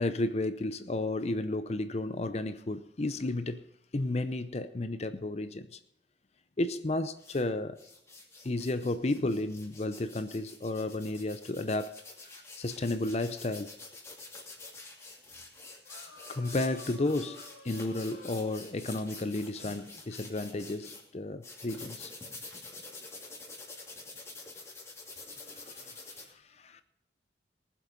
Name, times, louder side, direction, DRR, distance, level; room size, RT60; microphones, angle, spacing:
voice 1, 0.0-3.6 3.9-5.8 6.6-7.8 8.4-12.0 12.6-13.7 16.3-22.1 25.5-26.1 26.6-26.8, left 2 dB, 35° left, 0.6 m, -32 dB
sound 1, 7.2-7.4 7.8-21.0 21.4-26.2, left 3 dB, 15° left, 2.7 m, -47 dB
sound 2, 15.8-18.4 19.6-20.2 20.8-21.0, left 1 dB, 70° left, 2.5 m, -52 dB
voice 2, 25.9-26.8, right 1 dB, 40° right, 3.7 m, -76 dB
19.5 x 7.6 x 5.2 m
head